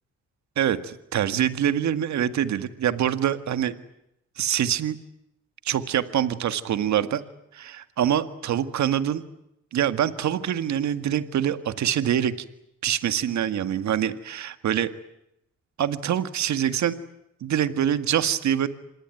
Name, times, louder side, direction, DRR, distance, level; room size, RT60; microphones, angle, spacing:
voice 1, 0.6-3.8 4.4-5.0 5.7-7.2 7.5-9.2 9.7-12.4 12.8-14.9 15.8-17.0 17.4-18.7, right 10 dB, 65° right, 11 dB, 1.9 m, -25 dB
26.5 x 20.5 x 9.2 m, 0.81 s
cardioid pair, 90°, 30 cm